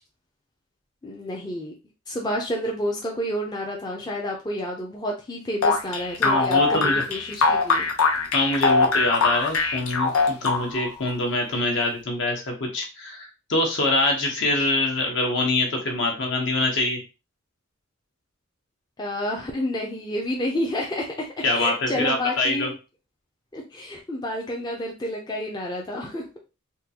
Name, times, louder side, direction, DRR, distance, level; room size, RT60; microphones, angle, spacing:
voice 1, 1.0-1.7 2.1-7.9 19.0-22.7 23.5-26.4, left 1 dB, 20° left, -2 dB, 0.5 m, -30 dB
sound 1, 5.6-10.9, left 4 dB, 80° left, 0.7 m, -22 dB
voice 2, 6.2-7.0 8.3-17.0 21.4-22.7, left 2 dB, 60° left, 1 dB, 1.0 m, -24 dB
3.6 x 2.3 x 2.8 m, 0.30 s
head